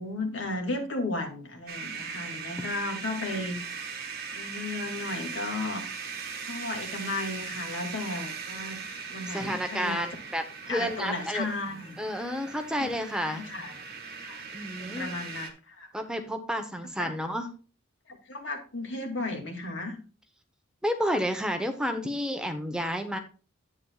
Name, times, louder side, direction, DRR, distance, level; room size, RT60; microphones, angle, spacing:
voice 1, 0.0-3.6 4.3-5.9 6.4-8.8 9.1-10.1 10.7-12.0 12.8-12.9 13.2-13.7 14.2-14.4 14.8-15.9 17.0-17.1 18.1-20.0, left 2 dB, 70° left, 3 dB, 2.3 m, -34 dB
sound 1, 1.7-15.5, right 5 dB, 50° right, 1.6 m, -39 dB
voice 2, 9.3-11.5 12.0-13.4 14.5-15.1 15.9-17.5 20.8-23.2, equal, 5° right, 6 dB, 0.8 m, -30 dB
10.5 x 8.7 x 2.3 m, 0.35 s
head